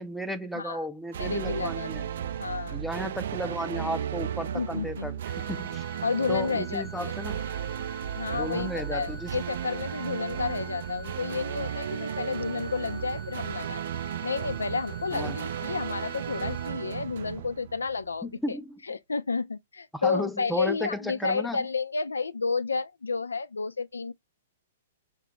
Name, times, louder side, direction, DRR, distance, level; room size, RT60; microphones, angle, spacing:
voice 1, 0.0-2.1 2.7-5.8 6.3-7.4 8.3-9.3 15.1-15.4 18.2-18.8 19.9-21.6, equal, ahead, 0.5 m, -34 dB
sound 1, 1.1-18.2, right 9 dB, 55° right, 0.3 m, -35 dB
voice 2, 1.2-1.9 2.4-2.8 4.5-5.1 6.0-7.1 8.1-13.8 14.2-18.6 18.9-24.1, left 4 dB, 70° left, 0.3 m, -31 dB
sound 2, 5.2-16.7, left 2 dB, 35° right, 0.7 m, -47 dB
5.6 x 2.2 x 2.8 m
figure-of-eight pair, 110°, 0 cm